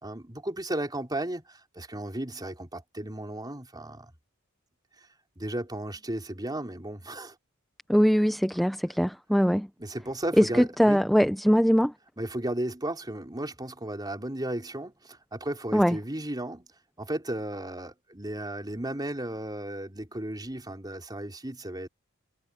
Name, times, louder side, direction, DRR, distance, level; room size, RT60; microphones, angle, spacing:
voice 1, 0.0-4.1 5.4-7.3 9.8-11.0 12.2-16.7 17.0-21.9, right 1 dB, 20° right, 4.2 m, -34 dB
voice 2, 7.9-9.7 10.4-11.9 15.7-16.0, equal, ahead, 0.6 m, -22 dB
head